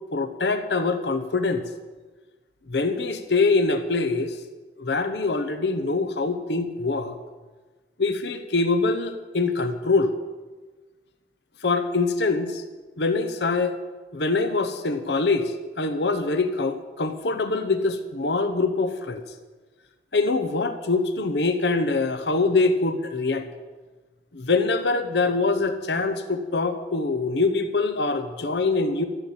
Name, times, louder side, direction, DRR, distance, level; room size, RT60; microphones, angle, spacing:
voice 1, 0.1-1.6 2.7-4.3 4.8-7.2 8.0-10.1 11.6-12.6 13.0-13.8 14.1-19.2 20.1-23.5 24.3-29.1, left 3 dB, 70° left, 8 dB, 0.9 m, -24 dB
13.5 x 7.3 x 9.1 m, 1.3 s
head